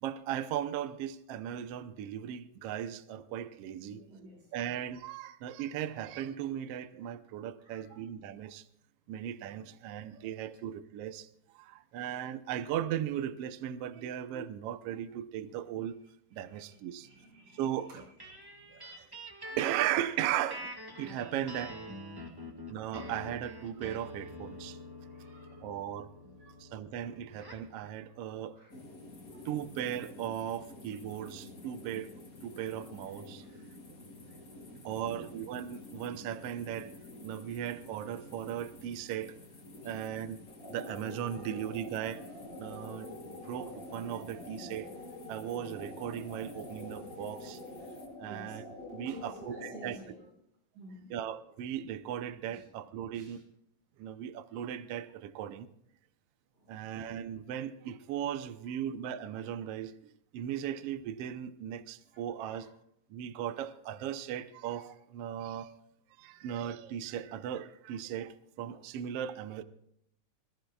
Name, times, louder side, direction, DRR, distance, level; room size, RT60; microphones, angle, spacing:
voice 1, 0.0-4.0 4.5-8.6 9.1-11.3 11.5-16.0 16.3-17.1 17.6-18.0 18.7-19.1 19.4-21.7 22.7-24.8 25.6-26.1 26.6-28.5 29.4-33.4 34.8-36.9 37.2-39.3 39.8-40.4 40.7-42.2 42.6-44.9 45.3-47.6 48.2-48.7 48.9-50.0 51.1-53.4 54.0-55.7 56.7-59.9 60.3-62.7 63.1-65.7 66.2-69.6, right 10 dB, 80° right, 1.4 m, -37 dB
voice 2, 3.8-4.6 7.6-8.0 10.2-10.3 16.4-18.9 22.1-22.5 25.1-25.7 26.2-26.5 28.4-28.7 29.1-29.5 31.1-31.2 32.8-33.0 33.4-35.4 39.8-40.1 41.3-41.5 48.2-48.6 49.0-50.3 50.7-51.1 52.5-52.7 53.1-53.4 56.5-56.9 58.7-58.8 62.1-62.7 66.2-66.4, right 1 dB, 65° right, 7.0 m, -55 dB
sound 1, 18.2-27.7, left 1 dB, 35° right, 0.3 m, -46 dB
sound 2, 28.7-48.1, left 2 dB, 30° left, 2.3 m, -51 dB
sound 3, 40.5-50.1, left 2 dB, 45° left, 7.6 m, -46 dB
26.0 x 14.5 x 2.4 m
omnidirectional pair, 3.8 m